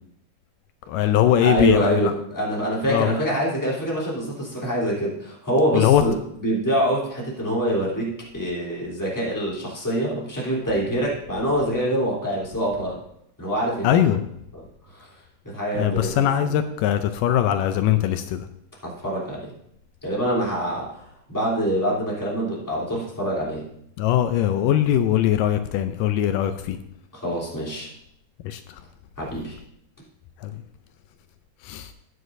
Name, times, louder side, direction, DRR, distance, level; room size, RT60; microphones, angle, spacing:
voice 1, 0.9-2.1 2.9-3.1 5.7-6.0 13.8-14.2 15.8-18.5 24.0-26.8 28.4-28.6 30.4-30.6 31.6-31.9, left 11 dB, 80° left, 9 dB, 2.2 m, -21 dB
voice 2, 1.4-13.0 13.4-14.0 14.5-15.1 15.4-16.5 18.8-19.5 20.0-23.6 27.1-27.9 29.2-29.5, equal, 5° left, -6 dB, 2.7 m, -25 dB
14.0 x 9.4 x 2.6 m, 0.74 s
omnidirectional pair, 3.9 m